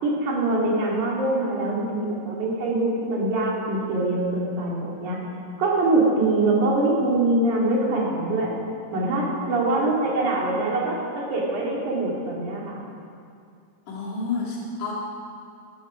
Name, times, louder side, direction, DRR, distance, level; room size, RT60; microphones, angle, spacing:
voice 1, 0.0-5.2 5.6-8.5 8.9-12.8, right 2 dB, 65° right, -4 dB, 3.9 m, -23 dB
voice 2, 13.9-14.9, left 4 dB, 90° left, -6 dB, 4.7 m, -29 dB
15.5 x 13.0 x 5.0 m, 2.4 s
omnidirectional pair, 3.7 m